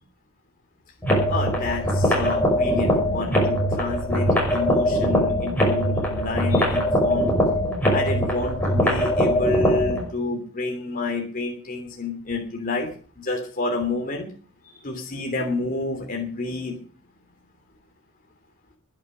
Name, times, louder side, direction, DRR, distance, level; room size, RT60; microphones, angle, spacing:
sound 1, 1.0-10.0, equal, 10° left, 6.2 m, -22 dB
voice 1, 1.3-7.3 7.9-12.9 13.2-14.3 14.6-16.8, left 3 dB, 40° left, 1 dB, 2.9 m, -29 dB
21.0 x 7.4 x 6.7 m, 0.42 s
head